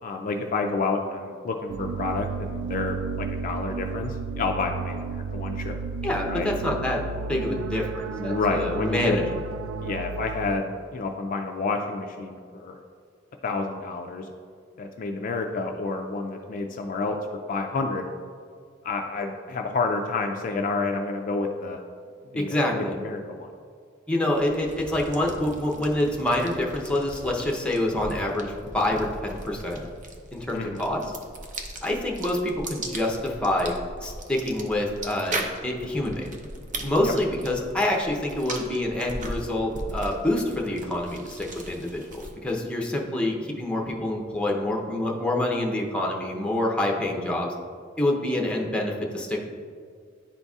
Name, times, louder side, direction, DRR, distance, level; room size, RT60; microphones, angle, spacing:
voice 1, 0.0-5.8 6.3-6.5 8.1-9.2 9.8-12.8 13.4-14.3 14.8-17.2 17.5-18.1 18.8-21.8 22.3-23.5 30.5-30.8 37.0-37.1, left 3 dB, 45° left, 3 dB, 0.3 m, -29 dB
sound 1, 1.7-10.6, right 4 dB, 75° right, 0.3 m, -33 dB
voice 2, 6.0-9.2 22.4-22.9 24.1-29.8 30.3-31.0 31.8-33.8 34.0-36.3 36.8-47.5 48.0-49.4, left 1 dB, 5° left, -1 dB, 0.7 m, -27 dB
sound 2, 24.3-42.5, right 2 dB, 40° right, 0.6 m, -39 dB
10.5 x 4.0 x 2.4 m, 2.2 s
head